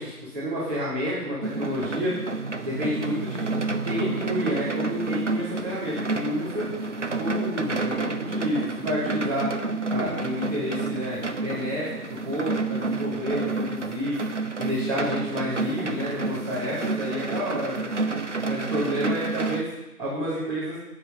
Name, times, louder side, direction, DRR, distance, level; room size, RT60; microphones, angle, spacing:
voice 1, 0.0-2.1 2.6-3.4 3.8-6.7 7.2-9.5 9.9-14.2 14.6-17.9 18.4-19.6 20.0-20.8, equal, 35° right, -12 dB, 3.6 m, -29 dB
sound 1, 1.4-19.6, right 3 dB, 50° right, 0.6 m, -29 dB
14.0 x 5.2 x 5.7 m, 0.97 s
figure-of-eight pair, 175°, 47 cm